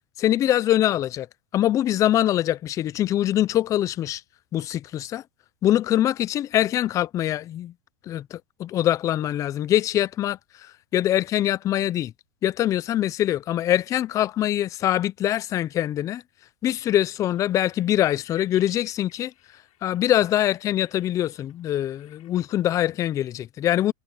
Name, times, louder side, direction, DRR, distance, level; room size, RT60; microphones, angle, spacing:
voice 1, 0.2-1.3 1.5-4.2 4.5-5.2 5.6-7.7 8.1-10.4 10.9-12.1 12.4-16.2 16.6-19.3 19.8-23.9, left 12 dB, 20° left, 0.3 m, -23 dB
sound 1, 17.2-22.5, left 14 dB, 80° left, 7.2 m, -50 dB
supercardioid pair, 150°, 18 cm